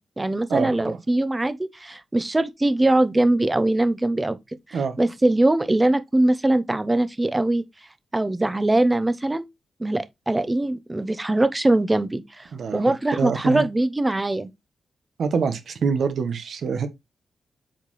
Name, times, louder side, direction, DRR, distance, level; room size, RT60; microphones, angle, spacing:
voice 1, 0.2-4.4 4.7-7.6 8.1-9.4 9.8-14.5, right 1 dB, 15° right, 0.8 m, -22 dB
voice 2, 12.5-12.8 13.2-13.6 15.2-16.9, right 5 dB, 70° right, 1.2 m, -25 dB
7.9 x 4.4 x 3.1 m
cardioid pair, 100°, 0 cm